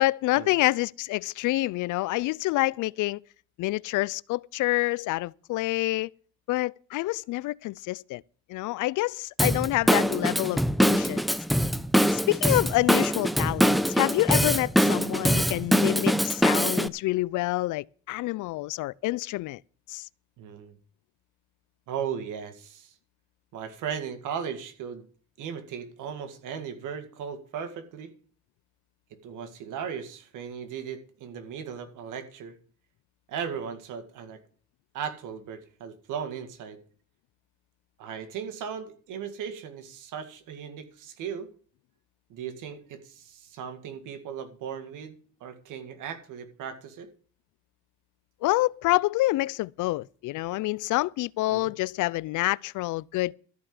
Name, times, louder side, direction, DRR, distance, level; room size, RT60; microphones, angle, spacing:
voice 1, 0.0-3.2 3.6-6.1 6.5-8.2 8.5-11.2 12.1-19.6 19.9-20.1 48.4-53.3, left 18 dB, 85° left, 0.5 m, -27 dB
Drum kit / Drum, 9.4-16.9, equal, ahead, 0.7 m, -23 dB
voice 2, 20.4-20.8 21.9-22.9 23.5-25.0 25.4-28.1 29.1-32.5 33.3-34.4 34.9-36.8 38.0-41.5 42.3-45.1 45.4-47.1 51.5-51.7, right 7 dB, 90° right, 2.1 m, -37 dB
13.5 x 5.6 x 9.6 m
cardioid pair, 90°, 30 cm